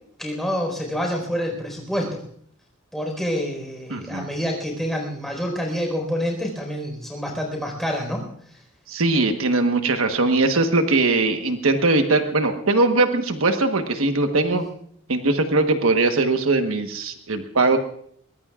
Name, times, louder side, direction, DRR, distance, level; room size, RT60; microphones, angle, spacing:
voice 1, 0.2-2.2 2.9-8.3 14.5-14.6, equal, ahead, 0 dB, 4.4 m, -27 dB
voice 2, 3.9-4.3 8.9-14.6 15.1-17.8, right 3 dB, 75° right, 6 dB, 1.3 m, -20 dB
23.0 x 20.0 x 2.4 m, 0.62 s
head